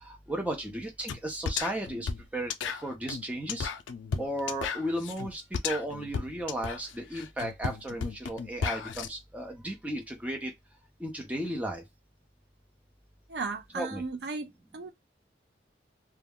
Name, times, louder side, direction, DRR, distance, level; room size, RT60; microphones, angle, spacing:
voice 1, 0.0-2.5 2.8-3.7 4.2-10.5 11.0-11.8 13.7-14.0, right 1 dB, 10° right, 0.6 m, -35 dB
sound 1, 1.1-1.2 1.4-9.1, left 6 dB, 85° left, 0.4 m, -34 dB
voice 2, 13.3-14.9, right 4 dB, 60° right, 0.4 m, -36 dB
2.3 x 2.2 x 3.5 m
head